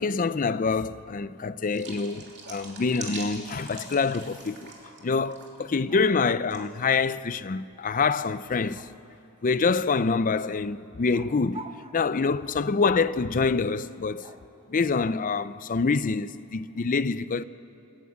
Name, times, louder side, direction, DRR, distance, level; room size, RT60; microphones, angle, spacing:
voice 1, 0.0-4.7 5.0-8.9 9.4-11.6 11.9-14.3 14.7-17.4, left 4 dB, 40° left, 0.5 m, -26 dB
sound 1, 1.7-5.0 5.3-5.6 6.5-6.7, right 4 dB, 55° right, 2.9 m, -42 dB
sound 2, 5.9-6.8 8.7-9.3 11.1-12.7 14.2-15.4, right 3 dB, 25° right, 0.9 m, -47 dB
28.5 x 11.0 x 8.5 m
head